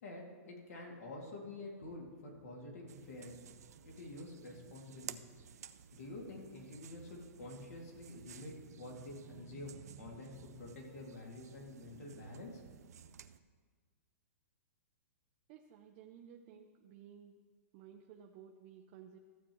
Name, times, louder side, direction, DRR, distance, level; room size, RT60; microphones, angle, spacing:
voice 1, 0.0-3.4 3.8-5.2 5.9-12.6, left 2 dB, 75° left, -1 dB, 2.5 m, -48 dB
sound 1, 2.9-13.4, right 8 dB, 80° right, 0.5 m, -54 dB
voice 2, 15.5-17.3 17.7-19.2, right 8 dB, 30° right, 2 dB, 0.5 m, -55 dB
14.5 x 8.1 x 3.1 m, 1.5 s
hypercardioid pair, 160°, 8 cm